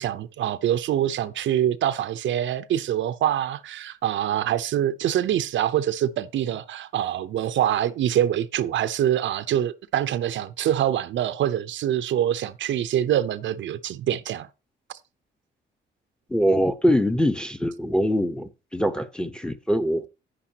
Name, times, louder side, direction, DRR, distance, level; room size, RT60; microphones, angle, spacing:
voice 1, 0.0-14.5 14.9-15.0, right 11 dB, 70° right, 0.7 m, -25 dB
voice 2, 16.3-20.1, equal, 5° left, 0.9 m, -23 dB
10.0 x 9.9 x 2.9 m
cardioid pair, 90°, 20 cm